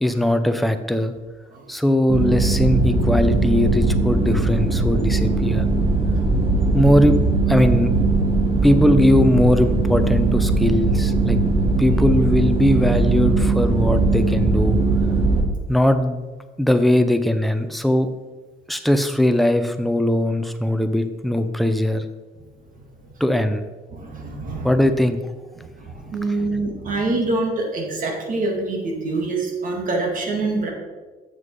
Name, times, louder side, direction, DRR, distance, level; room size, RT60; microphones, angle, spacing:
voice 1, 0.0-1.1 1.7-5.7 6.7-7.2 7.5-7.9 8.6-11.4 11.8-14.8 15.7-16.2 16.6-18.1 18.7-22.0 23.2-23.6 24.6-25.2, left 1 dB, ahead, 8 dB, 0.7 m, -19 dB
sound 1, 2.1-15.4, right 3 dB, 30° right, 1.6 m, -19 dB
voice 2, 23.9-24.9 25.6-30.7, right 3 dB, 50° right, 1 dB, 2.1 m, -25 dB
7.5 x 6.3 x 5.4 m, 1.3 s
cardioid pair, 110°, 17 cm